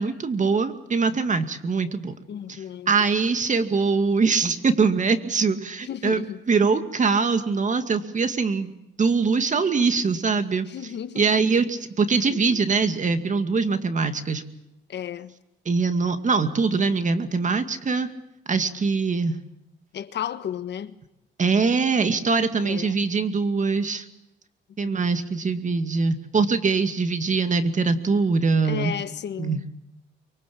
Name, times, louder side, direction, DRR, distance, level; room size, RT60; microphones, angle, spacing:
voice 1, 0.0-2.1 2.5-6.2 6.5-10.7 11.2-14.4 15.7-18.1 18.5-19.3 21.4-24.0 24.8-28.9 29.4-29.6, right 4 dB, 40° right, 2.2 m, -23 dB
voice 2, 2.3-3.0 5.8-6.4 10.7-11.3 12.3-12.6 14.9-15.3 19.9-20.9 22.6-23.0 24.8-25.0 28.6-29.7, left 9 dB, 60° left, 1.4 m, -33 dB
24.0 x 23.5 x 8.7 m
cardioid pair, 90°, 20 cm